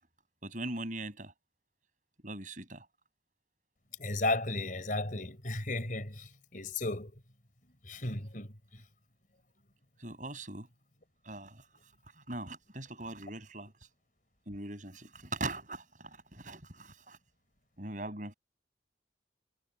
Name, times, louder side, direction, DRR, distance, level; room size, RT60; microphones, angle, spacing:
voice 1, 0.4-1.3 2.2-2.9 10.0-10.7 11.2-13.7 14.5-17.2 17.8-18.3, right 2 dB, 45° right, 7.7 m, -41 dB
voice 2, 4.0-7.1 7.8-8.5, left 2 dB, 50° left, 5.2 m, -34 dB
head